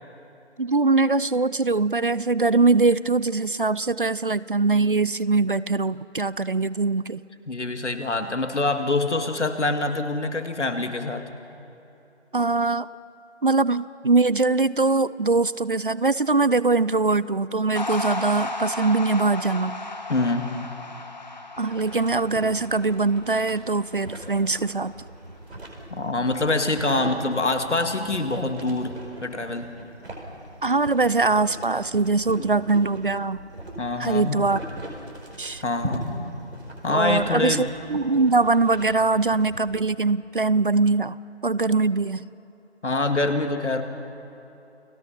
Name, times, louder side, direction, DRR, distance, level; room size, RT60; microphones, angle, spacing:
voice 1, 0.6-7.2 12.3-12.9 13.4-19.7 21.6-24.9 30.6-33.4 34.0-34.6 35.4-35.6 36.9-41.2 41.4-42.2, right 3 dB, 50° right, 18 dB, 0.5 m, -22 dB
voice 2, 7.5-11.3 20.1-20.5 25.9-29.7 32.4-32.5 33.8-34.5 35.6-36.1 36.8-37.7 42.8-43.8, left 2 dB, 85° left, 6 dB, 2.3 m, -25 dB
sound 1, 17.8-24.2, left 2 dB, 40° left, 1.5 m, -34 dB
sound 2, 21.6-39.8, right 1 dB, 65° right, 5.0 m, -40 dB
30.0 x 19.0 x 5.8 m, 3.0 s
figure-of-eight pair, 170°, 34 cm